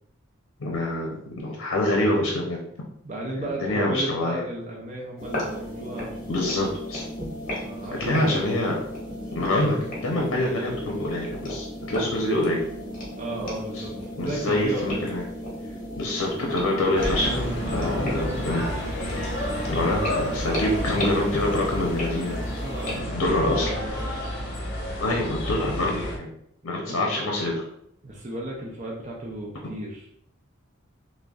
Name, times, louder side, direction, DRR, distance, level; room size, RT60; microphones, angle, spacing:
voice 1, 0.6-2.6 3.4-4.4 6.3-7.0 8.0-8.7 9.3-12.6 13.7-13.9 14.2-15.2 16.0-18.6 19.6-22.4 23.0-23.7 24.2-24.3 25.0-26.3 26.6-27.6, left 1 dB, 80° left, -1 dB, 0.7 m, -26 dB
voice 2, 3.0-6.2 7.6-8.4 13.2-15.1 17.6-18.9 22.6-24.4 26.9-27.0 28.0-30.1, right 1 dB, 35° right, -2 dB, 0.5 m, -34 dB
sound 1, 5.2-23.0, equal, 40° left, 1.3 m, -35 dB
sound 2, 17.0-26.2, left 1 dB, 60° left, 0.9 m, -30 dB
6.0 x 2.2 x 2.3 m, 0.73 s
head